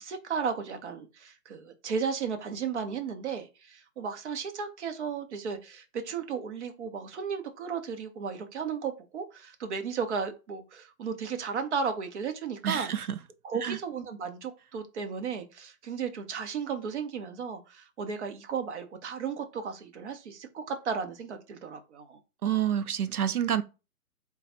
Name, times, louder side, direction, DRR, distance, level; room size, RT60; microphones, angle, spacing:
voice 1, 0.0-12.9 13.4-22.2, right 6 dB, 50° right, 1.0 m, -34 dB
voice 2, 12.6-13.2 13.6-13.8 22.4-23.6, right 9 dB, 75° right, 0.8 m, -28 dB
3.7 x 2.4 x 4.3 m
hypercardioid pair, 140°, 45 cm